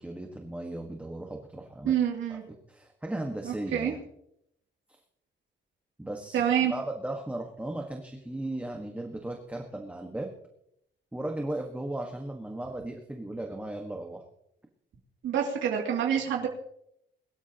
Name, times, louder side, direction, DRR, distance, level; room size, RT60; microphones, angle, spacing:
voice 1, 0.0-1.9 2.3-4.0 6.0-10.3 11.1-14.2 16.4-16.5, right 1 dB, 5° right, 2 dB, 1.5 m, -36 dB
voice 2, 1.8-2.4 3.4-3.9 6.3-6.7 15.2-16.5, right 9 dB, 80° right, -1 dB, 2.8 m, -27 dB
22.5 x 13.0 x 3.0 m, 0.75 s
cardioid pair, 130°, 20 cm